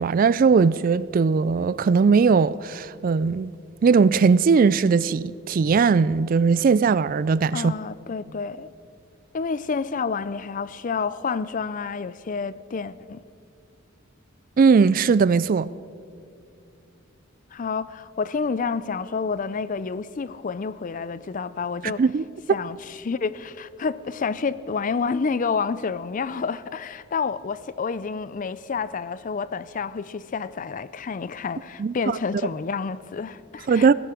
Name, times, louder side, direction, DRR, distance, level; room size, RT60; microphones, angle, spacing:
voice 1, 0.0-3.5 3.8-7.7 14.6-15.7 21.8-22.6 31.8-32.2 33.7-33.9, right 5 dB, 45° right, 0.3 m, -19 dB
voice 2, 7.5-8.7 9.3-13.2 17.5-22.0 22.5-33.9, left 5 dB, 40° left, 0.4 m, -29 dB
17.5 x 16.0 x 5.0 m
head